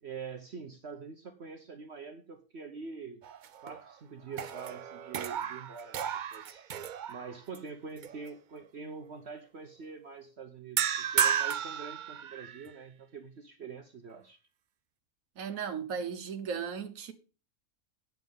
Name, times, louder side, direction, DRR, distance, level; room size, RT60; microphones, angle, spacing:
voice 1, 0.0-3.2 3.6-6.6 7.1-14.4, right 5 dB, 50° right, 1.1 m, -45 dB
sound 1, 3.2-3.9 4.3-7.6 8.0-8.3 10.8-12.7, right 8 dB, 90° right, 0.4 m, -33 dB
voice 2, 15.4-17.1, right 6 dB, 65° right, 1.6 m, -36 dB
9.9 x 7.5 x 5.3 m
omnidirectional pair, 1.6 m